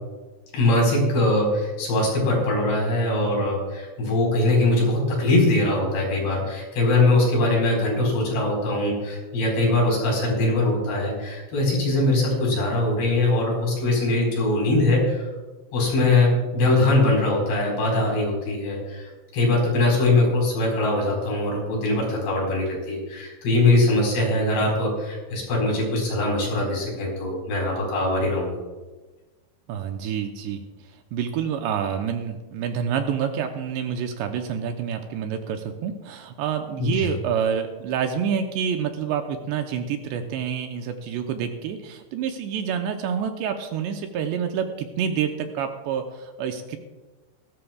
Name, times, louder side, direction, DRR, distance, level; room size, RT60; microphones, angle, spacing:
voice 1, 0.5-15.3 15.7-28.6 36.8-37.1, left 2 dB, 65° left, -2 dB, 6.5 m, -22 dB
voice 2, 29.7-30.6 31.1-46.8, right 7 dB, 80° right, 5 dB, 2.8 m, -28 dB
18.0 x 15.0 x 2.3 m, 1.2 s
omnidirectional pair, 5.3 m